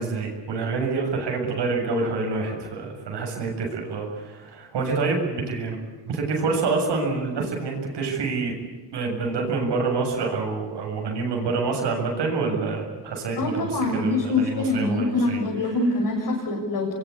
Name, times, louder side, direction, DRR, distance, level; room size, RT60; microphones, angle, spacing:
voice 1, 0.0-5.8 6.0-8.5 8.9-15.4, right 4 dB, 75° right, 1 dB, 7.7 m, -27 dB
voice 2, 13.4-16.9, left 2 dB, 60° left, -2 dB, 7.9 m, -24 dB
25.5 x 23.0 x 8.5 m, 1.3 s
cardioid pair, 105°, 41 cm